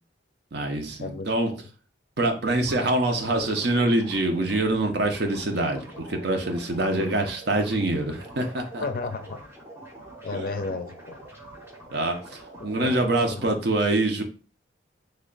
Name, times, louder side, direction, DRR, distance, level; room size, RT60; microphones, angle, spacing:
voice 1, 0.5-1.5 2.2-8.8 10.3-10.5 11.9-14.2, right 2 dB, 60° right, 4 dB, 0.6 m, -25 dB
sound 1, 2.5-13.5, right 1 dB, 15° right, 0.7 m, -45 dB
voice 2, 8.8-9.4 10.2-11.2 12.5-13.5, left 3 dB, 45° left, 7 dB, 0.4 m, -33 dB
3.3 x 2.2 x 3.8 m, 0.36 s
head